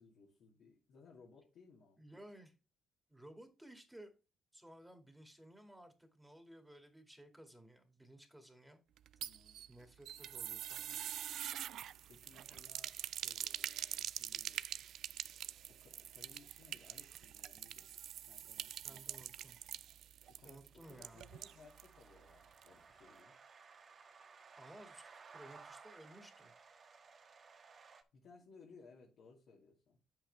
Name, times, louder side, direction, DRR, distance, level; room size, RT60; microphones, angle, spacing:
voice 1, 0.0-2.0 9.2-9.6 12.1-14.8 15.7-17.9 18.3-19.2 20.3-23.4 28.1-30.0, left 4 dB, 75° left, -4 dB, 2.4 m, -62 dB
voice 2, 2.0-2.5 3.1-4.1 4.5-8.8 9.7-11.0 18.8-19.6 20.4-21.3 24.6-25.0 25.3-26.5, right 1 dB, 5° right, 5 dB, 2.3 m, -57 dB
sound 1, 9.0-21.9 22.2-22.3 22.6-22.7, right 11 dB, 75° right, 0.3 m, -45 dB
sound 2, 20.8-28.0, right 5 dB, 50° right, 1.5 m, -59 dB
8.6 x 7.6 x 3.4 m, 0.31 s
cardioid pair, 90°, 0 cm